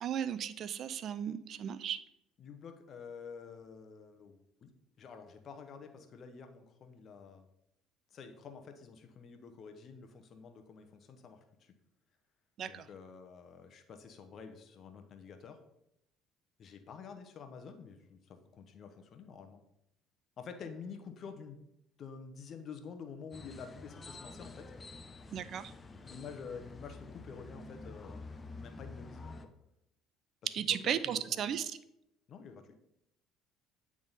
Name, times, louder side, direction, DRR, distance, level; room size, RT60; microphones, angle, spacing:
voice 1, 0.0-2.0 12.6-12.9 25.3-25.7 30.5-31.8, right 9 dB, 55° right, 14 dB, 0.4 m, -35 dB
voice 2, 2.4-4.7 5.0-7.5 8.1-11.7 12.6-15.6 16.6-19.6 20.4-21.7 22.0-24.7 26.1-28.2 28.6-29.5 30.6-31.5 32.3-32.7, left 5 dB, 50° left, 7 dB, 0.9 m, -49 dB
sound 1, 23.3-29.5, left 3 dB, 25° left, 0.6 m, -49 dB
8.7 x 3.6 x 4.0 m, 0.82 s
supercardioid pair, 80°, 0 cm